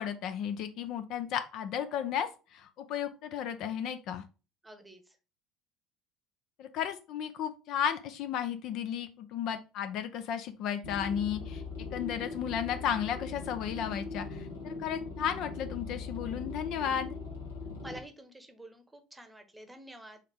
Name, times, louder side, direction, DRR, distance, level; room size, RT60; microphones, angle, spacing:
voice 1, 0.0-4.2 6.6-11.6 11.9-17.2, left 9 dB, 50° left, 9 dB, 0.5 m, -34 dB
voice 2, 4.6-5.0 17.8-20.2, right 1 dB, 10° right, 8 dB, 0.9 m, -49 dB
sound 1, 10.8-18.0, left 3 dB, 75° left, 1.3 m, -40 dB
4.1 x 3.8 x 3.5 m, 0.32 s
figure-of-eight pair, 65°, 0 cm